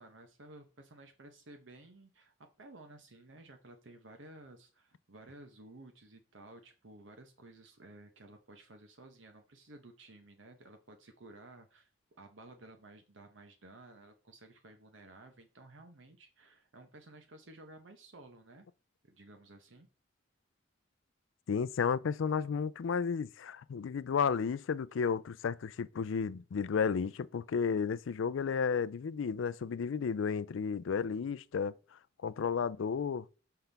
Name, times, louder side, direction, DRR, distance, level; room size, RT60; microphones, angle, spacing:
voice 1, 0.0-11.9 12.2-18.7 19.0-19.9, right 2 dB, 75° right, 0.9 m, -55 dB
voice 2, 21.5-31.7 32.2-33.2, left 6 dB, 90° left, 0.4 m, -32 dB
5.7 x 5.7 x 3.4 m
head